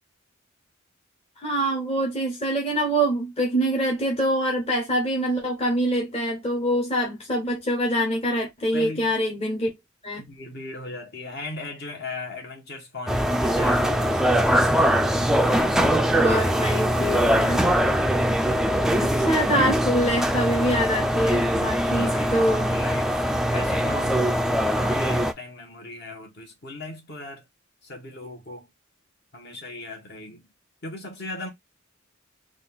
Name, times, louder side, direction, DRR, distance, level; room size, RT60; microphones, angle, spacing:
voice 1, 1.4-9.7 10.0-10.2 16.1-17.8 18.9-22.7, right 1 dB, 30° left, 0.9 m, -25 dB
voice 2, 8.7-9.1 10.2-15.1 21.9-23.2 23.5-24.2 24.7-27.5 27.8-28.7 29.3-30.5 30.8-31.5, left 2 dB, 55° left, 1.3 m, -38 dB
sound 1, 13.1-25.3, equal, ahead, 0.3 m, -22 dB
3.9 x 2.4 x 3.4 m
head